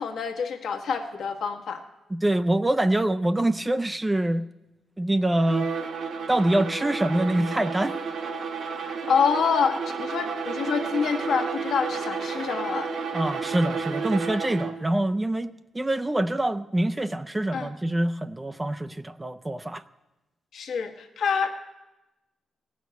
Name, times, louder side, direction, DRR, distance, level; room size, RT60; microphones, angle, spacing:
voice 1, 0.0-1.8 8.8-12.9 17.5-17.7 20.5-21.5, left 6 dB, 70° left, 4 dB, 1.3 m, -27 dB
voice 2, 2.1-4.4 5.0-5.7 6.3-7.9 13.1-19.8, right 1 dB, 10° right, 10 dB, 0.4 m, -25 dB
Bowed string instrument, 5.4-14.9, right 5 dB, 65° right, 1.2 m, -32 dB
16.5 x 6.3 x 9.3 m, 1.0 s
cardioid pair, 140°, 0 cm